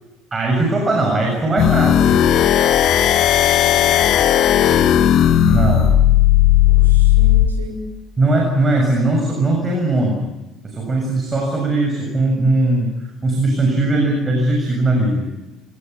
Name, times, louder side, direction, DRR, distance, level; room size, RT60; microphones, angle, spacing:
voice 1, 0.3-2.2 5.4-6.0 8.2-10.3 10.6-15.3, right 2 dB, 25° right, 1 dB, 7.2 m, -19 dB
sound 1, 1.6-7.5, left 11 dB, 50° left, 1.4 m, -14 dB
voice 2, 3.3-4.9 6.7-7.8, right 2 dB, 80° right, 1 dB, 4.5 m, -36 dB
28.5 x 18.5 x 8.2 m, 1.0 s
figure-of-eight pair, 55°, 0 cm